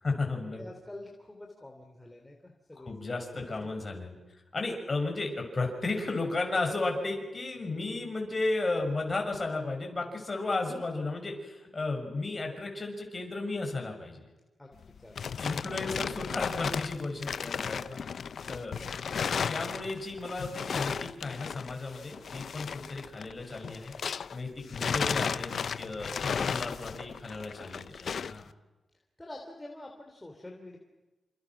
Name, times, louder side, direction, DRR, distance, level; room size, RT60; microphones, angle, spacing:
voice 1, 0.0-0.6 2.8-14.3 15.4-18.0 18.5-18.8 19.5-23.9 24.3-25.5 25.8-28.5, left 3 dB, 30° left, 3 dB, 6.5 m, -34 dB
voice 2, 0.6-2.9 3.3-3.7 14.6-15.4 18.5-18.8 29.2-30.8, left 1 dB, 10° left, 1 dB, 3.5 m, -47 dB
sound 1, 14.8-24.4 24.7-28.4, left 6 dB, 65° left, 0.8 m, -34 dB
29.0 x 27.5 x 6.2 m, 1.1 s
wide cardioid pair, 130°, 0 cm